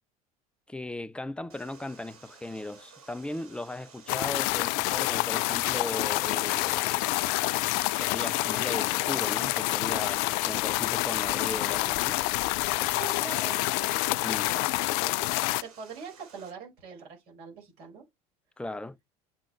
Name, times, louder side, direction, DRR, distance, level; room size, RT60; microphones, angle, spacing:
voice 1, 0.7-7.1 8.0-12.2 14.2-14.5 18.6-19.0, left 1 dB, 5° left, 0.6 m, -37 dB
Water, 1.5-16.5, right 5 dB, 75° right, 2.5 m, -54 dB
sound 1, 4.1-15.6, left 21 dB, 55° left, 0.4 m, -27 dB
voice 2, 12.9-14.7 15.0-15.2 15.5-18.0, right 6 dB, 60° right, 5.3 m, -44 dB
7.7 x 3.8 x 4.4 m
figure-of-eight pair, 65°, 19 cm